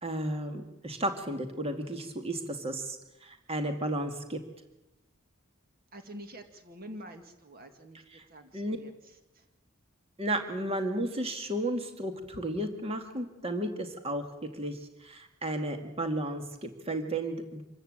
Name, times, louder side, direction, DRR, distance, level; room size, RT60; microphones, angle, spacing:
voice 1, 0.0-4.4 8.2-8.3 8.5-8.8 10.2-14.3 14.5-17.6, right 1 dB, 30° right, 6 dB, 2.1 m, -33 dB
voice 2, 5.9-8.0 8.3-9.5, equal, 45° right, 6 dB, 2.0 m, -47 dB
26.0 x 14.0 x 8.9 m, 0.98 s
head